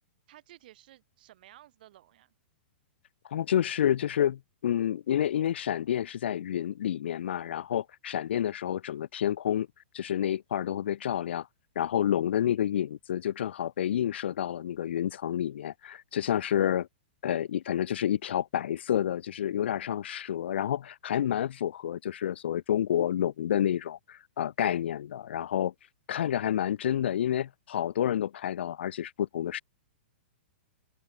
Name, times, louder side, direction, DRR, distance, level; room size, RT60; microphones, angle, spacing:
voice 1, 0.3-2.3, right 14 dB, 50° right, 4.2 m, -55 dB
voice 2, 3.3-9.7 9.9-11.5 11.8-16.9 17.2-25.7 26.1-29.6, left 10 dB, 70° left, 0.7 m, -29 dB
open air
hypercardioid pair, 165°, 6 cm